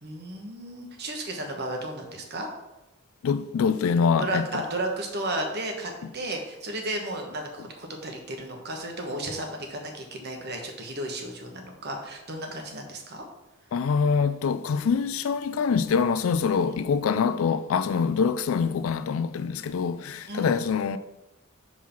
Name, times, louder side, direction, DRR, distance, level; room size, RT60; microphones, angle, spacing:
voice 1, 0.0-2.5 4.2-13.2 16.6-16.8 20.2-20.7, right 1 dB, 50° right, 1.2 m, -34 dB
voice 2, 3.2-4.4 13.7-21.0, left 6 dB, 70° left, 0.3 m, -25 dB
5.5 x 4.6 x 5.8 m
head